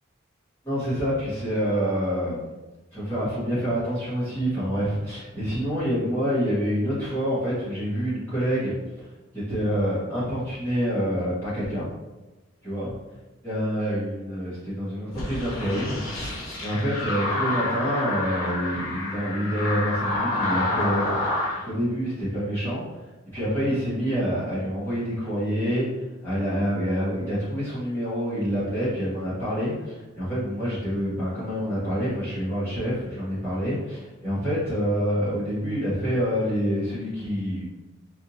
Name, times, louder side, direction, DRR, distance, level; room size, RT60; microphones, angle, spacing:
voice 1, 0.6-2.5 2.9-9.1 9.3-11.9 12.6-12.9 13.4-16.0 16.6-21.2 21.6-25.9 26.2-37.7, equal, 10° left, -14 dB, 1.4 m, -27 dB
sound 1, 15.1-21.6, left 2 dB, 75° left, 0.9 m, -28 dB
3.5 x 2.6 x 2.8 m, 1.1 s
head